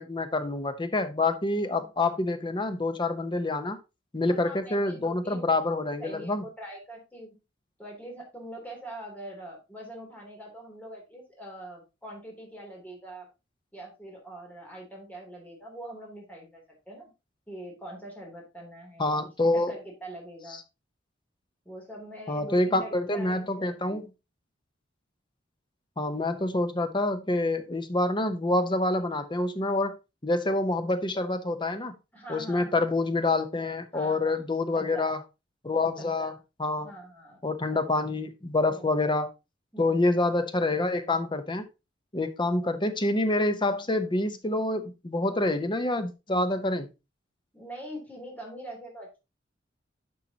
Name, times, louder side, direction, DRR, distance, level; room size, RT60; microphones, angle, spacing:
voice 1, 0.0-3.8 4.1-6.4 19.0-19.7 22.3-24.1 26.0-29.9 30.2-31.9 32.3-35.2 35.6-36.3 36.6-36.9 37.4-39.3 39.8-41.7 42.1-46.9, left 2 dB, 25° left, 0.9 m, -27 dB
voice 2, 4.3-5.5 6.0-7.4 7.8-13.3 13.7-17.1 17.5-20.6 21.6-24.0 32.1-32.8 33.9-34.4 34.7-35.1 36.0-36.3 36.8-37.4 37.7-37.8 38.7-38.9 39.7-40.1 47.5-49.2, right 1 dB, 10° left, 3.1 m, -43 dB
10.0 x 5.7 x 2.9 m
head